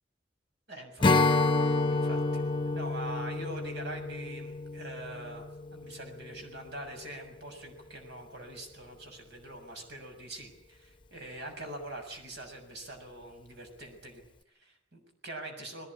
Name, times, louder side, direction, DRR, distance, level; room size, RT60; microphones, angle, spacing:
voice 1, 0.7-1.1 1.9-5.5 5.7-14.2 14.5-15.9, right 1 dB, 65° right, 4 dB, 6.8 m, -44 dB
Strum, 1.0-6.4, left 3 dB, 25° left, 0.9 m, -29 dB
21.5 x 19.0 x 9.9 m, 0.78 s
head